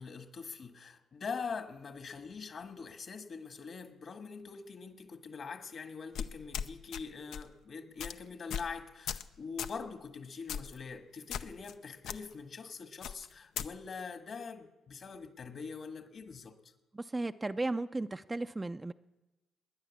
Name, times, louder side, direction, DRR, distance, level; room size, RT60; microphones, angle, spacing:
voice 1, 0.0-16.7, left 5 dB, 50° left, 8 dB, 1.6 m, -43 dB
sound 1, 6.1-7.0 7.3-7.5 8.0-8.1 8.5-8.7 9.1-9.3 9.6-9.8 10.5-10.8 11.3-11.7 12.0-12.2 13.0-13.7, left 8 dB, 80° left, 0.6 m, -38 dB
voice 2, 16.9-18.9, right 2 dB, 20° right, 10 dB, 0.4 m, -35 dB
20.0 x 10.0 x 7.2 m, 1.1 s
cardioid pair, 90°, 0 cm